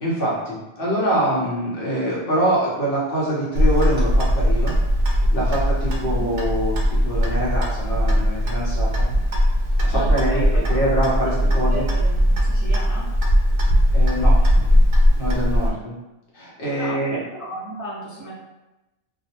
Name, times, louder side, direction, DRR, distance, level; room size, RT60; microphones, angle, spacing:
voice 1, 0.0-4.7 5.1-9.1 9.8-11.8 13.9-14.3 15.2-15.9 16.3-17.2, right 1 dB, 60° left, -6 dB, 0.9 m, -24 dB
Clock, 3.5-15.7, equal, 65° right, 0.7 m, -19 dB
voice 2, 9.9-10.8 11.2-13.1 15.6-15.7 16.8-18.3, right 1 dB, 20° right, -10 dB, 0.6 m, -34 dB
2.4 x 2.1 x 2.8 m, 1.0 s
omnidirectional pair, 1.1 m